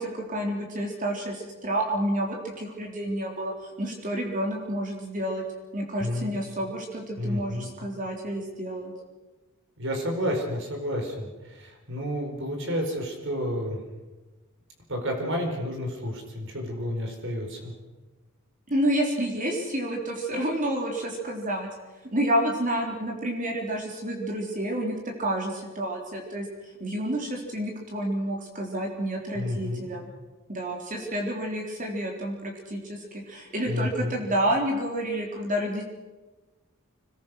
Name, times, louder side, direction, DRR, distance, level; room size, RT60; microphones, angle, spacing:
voice 1, 0.0-5.4 5.7-8.9 18.7-21.7 22.1-26.5 26.8-30.1 30.5-35.8, right 1 dB, 35° right, 0 dB, 3.6 m, -29 dB
voice 2, 6.0-6.3 7.2-7.7 9.8-13.8 14.9-17.7 29.3-29.8 33.6-34.2, equal, 55° right, 3 dB, 4.8 m, -30 dB
26.5 x 20.5 x 6.4 m, 1.2 s
head